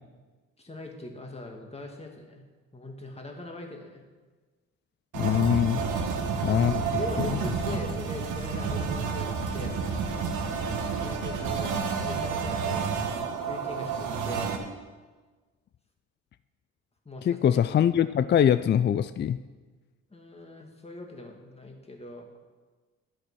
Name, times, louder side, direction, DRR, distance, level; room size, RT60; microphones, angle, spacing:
voice 1, 0.6-2.4 2.7-4.0 5.9-6.1 6.6-9.8 11.0-14.6 17.1-17.6 20.1-22.3, left 2 dB, 20° left, 2 dB, 2.2 m, -41 dB
voice 2, 5.1-5.8 6.4-6.7 7.2-7.3 17.2-19.4, left 9 dB, 35° left, 14 dB, 0.4 m, -23 dB
sound 1, 5.1-14.6, right 5 dB, 85° right, 1.5 m, -30 dB
sound 2, 6.1-12.7, left 3 dB, 70° left, 4.3 m, -50 dB
11.5 x 7.6 x 6.2 m, 1.3 s
cardioid pair, 90°, 30 cm